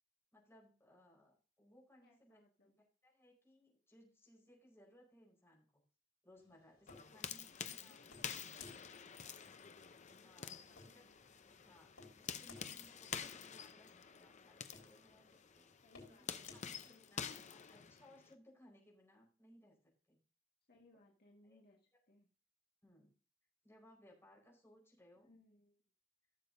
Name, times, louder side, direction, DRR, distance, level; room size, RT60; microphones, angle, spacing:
voice 1, 0.3-5.8 6.2-8.0 10.2-11.0 11.6-15.3 15.5-15.7 16.2-16.3 16.5-19.8 20.1-20.2 21.4-21.6 22.8-23.1 23.6-25.3, left 1 dB, 15° left, -2 dB, 4.6 m, -65 dB
voice 2, 2.0-2.7 7.5-9.4 10.2-11.5 15.8-16.6 16.8-17.5 20.7-22.3 25.2-25.8, left 2 dB, 55° left, -1 dB, 1.6 m, -69 dB
sound 1, 6.4-16.7, left 4 dB, 80° left, 3.9 m, -62 dB
sound 2, 6.9-18.3, left 7 dB, 35° left, 0.6 m, -49 dB
15.5 x 7.0 x 2.6 m, 0.36 s
head